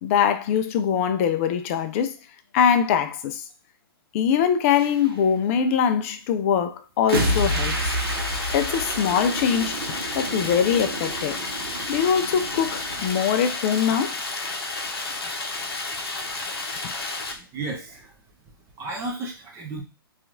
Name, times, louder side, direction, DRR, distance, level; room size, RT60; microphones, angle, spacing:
voice 1, 0.0-2.2 2.5-3.4 4.1-7.9 8.5-9.8 10.1-11.4 11.9-14.2, left 8 dB, 35° left, 0.3 m, -22 dB
sound 1, 4.8-5.1 7.1-13.1, right 1 dB, 70° right, 0.8 m, -30 dB
Stream, 7.1-17.3, left 3 dB, 85° left, 0.6 m, -31 dB
voice 2, 16.8-18.1 18.8-19.8, right 3 dB, 20° right, 0.8 m, -34 dB
2.8 x 2.4 x 2.6 m
hypercardioid pair, 135°, 13 cm